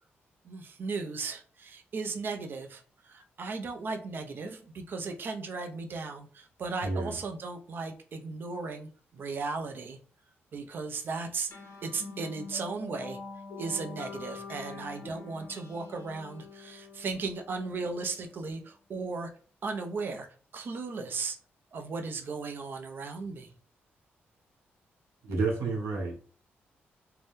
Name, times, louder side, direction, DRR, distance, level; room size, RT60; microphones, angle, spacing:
voice 1, 0.4-10.0 10.5-11.5 11.8-13.2 13.6-19.3 19.6-20.3 20.5-21.4 21.7-23.5, right 4 dB, 50° right, 5 dB, 0.5 m, -36 dB
voice 2, 6.8-7.2 25.2-26.1, right 3 dB, 90° right, 0 dB, 1.0 m, -30 dB
sound 1, 11.5-18.4, left 4 dB, 60° left, 0.7 m, -45 dB
2.6 x 2.1 x 3.5 m, 0.40 s
cardioid pair, 105°, 4 cm